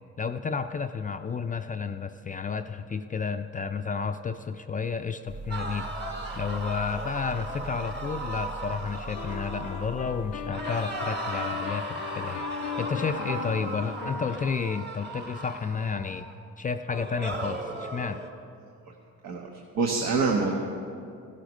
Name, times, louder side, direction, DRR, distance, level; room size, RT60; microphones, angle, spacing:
voice 1, 0.2-5.9 6.4-16.3 16.6-18.2, left 5 dB, 25° left, 8 dB, 0.4 m, -31 dB
sound 1, 5.3-10.5, right 3 dB, 50° right, 1.4 m, -42 dB
sound 2, 5.5-10.1 10.5-16.3 16.9-18.3, right 2 dB, 35° right, 1.6 m, -36 dB
sound 3, 9.1-15.9, left 11 dB, 80° left, 0.5 m, -39 dB
voice 2, 19.7-20.5, right 4 dB, 85° right, 0 dB, 1.3 m, -25 dB
15.0 x 11.5 x 5.3 m, 2.4 s
cardioid pair, 90°, 30 cm